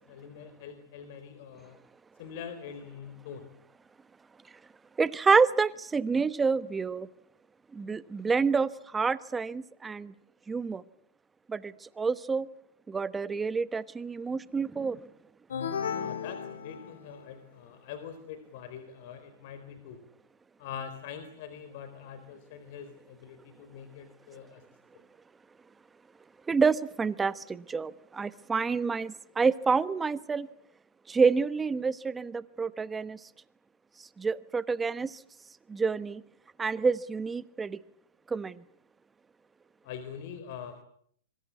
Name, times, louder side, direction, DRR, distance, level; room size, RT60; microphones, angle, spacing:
voice 1, 0.1-1.8 2.2-3.5 15.9-20.0 20.6-24.6 39.8-40.8, left 7 dB, 55° left, 10 dB, 4.1 m, -44 dB
voice 2, 5.0-7.1 7.7-10.1 10.5-10.8 11.5-12.5 12.9-15.0 26.5-30.5 31.1-33.2 34.2-35.1 35.7-36.2 36.6-37.8 38.3-38.6, right 5 dB, 10° right, 15 dB, 1.1 m, -28 dB
sound 1, 15.5-17.3, left 7 dB, 90° left, 4.4 m, -35 dB
25.5 x 23.0 x 8.4 m, 0.67 s
hypercardioid pair, 140°, 0 cm